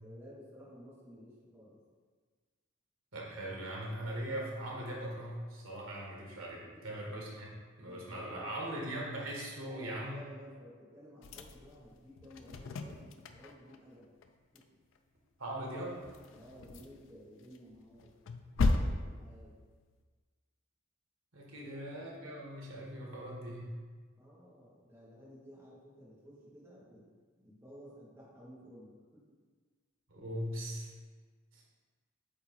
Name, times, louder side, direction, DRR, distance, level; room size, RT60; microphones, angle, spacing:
voice 1, 0.0-1.8 6.6-7.2 7.8-8.5 9.6-14.1 14.5-14.7 16.3-18.1 18.6-19.6 21.6-21.9 24.2-27.1 27.4-29.3, equal, 10° right, -8 dB, 1.2 m, -54 dB
voice 2, 3.1-7.5 7.8-10.2 15.4-16.0 21.3-23.7 30.1-30.9 31.5-31.6, right 1 dB, 90° right, -2 dB, 1.5 m, -40 dB
sound 1, 11.2-13.8 14.0-14.3 14.5-14.6 14.9-15.0 15.7-17.1 17.5-19.9, left 2 dB, 75° left, 0.4 m, -36 dB
8.4 x 2.8 x 4.1 m, 1.5 s
head